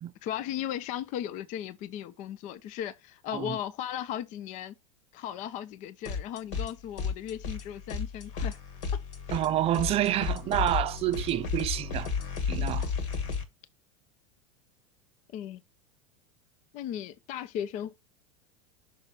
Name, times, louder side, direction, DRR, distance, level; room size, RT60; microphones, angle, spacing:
voice 1, 0.2-4.7 5.1-8.6 8.9-9.0 12.8-12.9 15.3-15.6 16.7-17.9, left 10 dB, 45° left, 0.7 m, -36 dB
sound 1, 6.0-6.7 7.0-13.4, left 5 dB, 65° left, 1.9 m, -33 dB
voice 2, 9.3-12.1 12.5-12.9, right 13 dB, 35° right, 0.6 m, -28 dB
6.2 x 3.7 x 5.8 m
hypercardioid pair, 90°, 17 cm